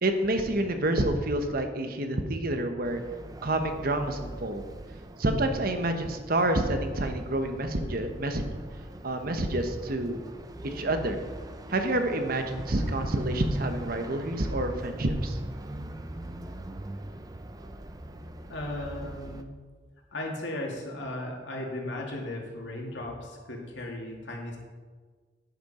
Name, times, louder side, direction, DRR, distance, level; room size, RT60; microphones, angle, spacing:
voice 1, 0.0-3.0 3.4-4.6 5.2-8.5 9.0-10.2 10.6-11.2 11.7-15.4, right 1 dB, 55° right, 6 dB, 1.1 m, -28 dB
sound 1, 2.8-19.4, right 1 dB, 20° right, 0.6 m, -43 dB
voice 2, 18.5-19.5 20.1-24.6, left 1 dB, 85° left, -1 dB, 2.4 m, -36 dB
10.5 x 10.0 x 4.3 m, 1.5 s
head